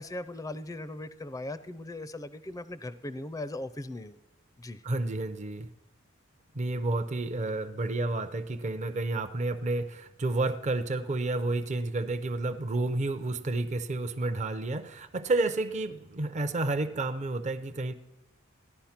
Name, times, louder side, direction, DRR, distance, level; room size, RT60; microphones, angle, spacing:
voice 1, 0.0-4.2 4.6-4.8, left 2 dB, 15° left, 14 dB, 0.4 m, -39 dB
voice 2, 4.8-5.7 6.5-17.9, right 2 dB, 35° right, 9 dB, 0.6 m, -30 dB
14.5 x 10.5 x 5.8 m, 1.0 s
head